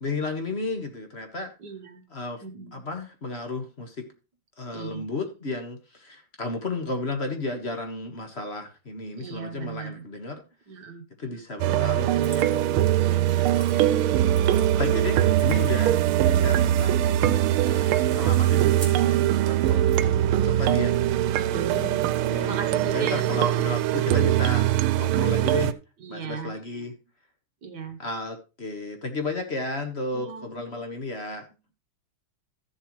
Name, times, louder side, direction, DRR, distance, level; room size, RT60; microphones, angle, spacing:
voice 1, 0.0-1.5 2.1-2.4 2.7-4.0 4.6-10.4 11.2-12.5 13.7-19.9 20.3-20.9 22.2-22.6 22.9-25.7 26.1-26.9 28.0-31.5, left 3 dB, 35° left, 5 dB, 1.5 m, -33 dB
voice 2, 1.6-2.0 2.4-2.8 4.7-5.1 9.2-10.0 10.7-11.4 12.9-13.5 17.8-19.2 21.5-22.0 22.4-23.7 26.0-26.6 27.6-28.0 30.1-30.8, right 5 dB, 60° right, 6 dB, 1.6 m, -38 dB
sound 1, 11.6-25.7, right 12 dB, 90° right, 1.5 m, -22 dB
sound 2, 12.2-13.0 13.4-14.8 15.2-16.0 16.5-17.3 17.7-20.1 20.9-23.8, right 2 dB, 35° right, 3.5 m, -47 dB
13.5 x 7.3 x 3.1 m, 0.30 s
omnidirectional pair, 2.3 m